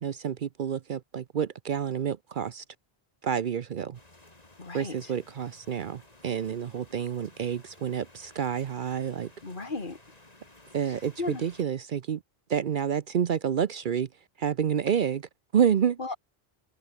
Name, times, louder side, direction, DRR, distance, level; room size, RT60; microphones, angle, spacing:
voice 1, 0.0-2.6 3.2-4.0 4.7-9.3 10.7-12.2 12.5-14.1 14.4-16.0, right 8 dB, 55° right, 0.8 m, -29 dB
sound 1, 3.9-11.6, left 2 dB, 40° left, 3.1 m, -55 dB
voice 2, 4.6-5.1 9.4-10.0 10.9-11.5 16.0-16.2, left 3 dB, 55° left, 2.4 m, -35 dB
open air
omnidirectional pair, 1.1 m